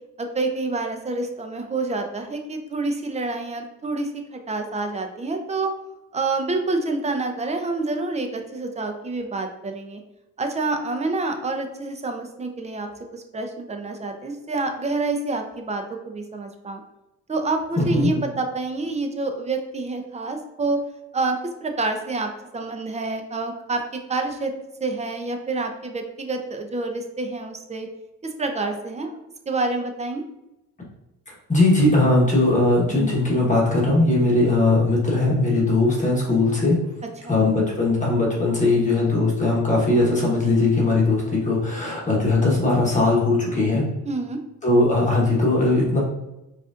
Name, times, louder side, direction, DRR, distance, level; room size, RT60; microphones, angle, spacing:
voice 1, 0.2-5.7 6.1-10.0 10.4-16.8 17.3-20.8 21.1-24.5 24.8-27.9 28.2-29.2 29.5-30.2 37.2-37.4 44.0-44.4, right 3 dB, 25° right, 5 dB, 0.5 m, -27 dB
voice 2, 17.8-18.1 31.3-36.8 37.3-43.9 44.6-46.0, left 2 dB, 25° left, -4 dB, 1.2 m, -19 dB
4.7 x 2.5 x 2.4 m, 0.95 s
cardioid pair, 90°, 30 cm